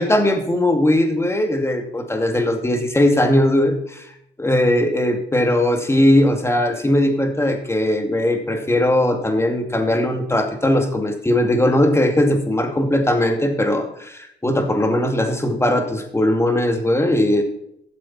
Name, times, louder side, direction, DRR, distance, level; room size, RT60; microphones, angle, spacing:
voice 1, 0.0-4.0 4.4-17.4, left 1 dB, 15° left, 4 dB, 2.3 m, -19 dB
13.0 x 7.4 x 4.3 m, 0.75 s
cardioid pair, 90°, 20 cm